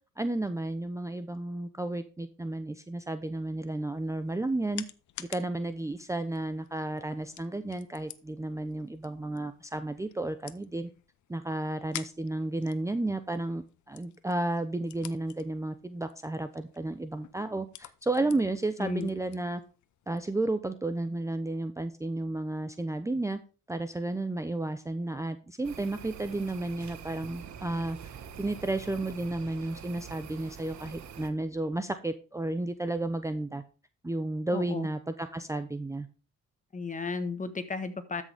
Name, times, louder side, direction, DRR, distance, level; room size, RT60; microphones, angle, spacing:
voice 1, 0.2-4.8 5.2-10.9 11.3-19.6 20.1-23.4 23.7-28.0 28.4-33.6 34.0-36.1, right 2 dB, 10° right, 10 dB, 0.7 m, -32 dB
sound 1, 3.9-20.3, left 13 dB, 70° left, 0.8 m, -50 dB
voice 2, 18.8-19.1 34.5-34.9 36.7-38.2, left 4 dB, 25° left, 10 dB, 1.4 m, -34 dB
sound 2, 25.6-31.3, right 8 dB, 65° right, 1.3 m, -45 dB
13.0 x 6.4 x 3.5 m, 0.35 s
cardioid pair, 90°, 30 cm